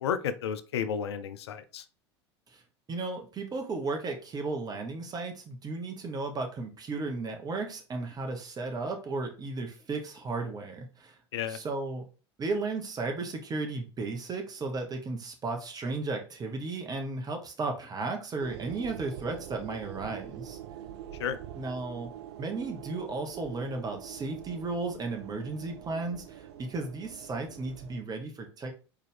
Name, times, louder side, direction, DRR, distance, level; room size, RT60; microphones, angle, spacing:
voice 1, 0.0-1.8 11.3-11.6 21.2-21.4, left 8 dB, 75° left, 12 dB, 0.5 m, -32 dB
voice 2, 2.9-11.2 11.5-12.1 12.4-20.6 21.6-22.1 22.4-28.7, right 3 dB, 25° right, 3 dB, 1.2 m, -34 dB
sound 1, 18.4-28.0, right 11 dB, 70° right, 0.5 m, -45 dB
4.3 x 3.6 x 3.5 m, 0.36 s
figure-of-eight pair, 75°, 14 cm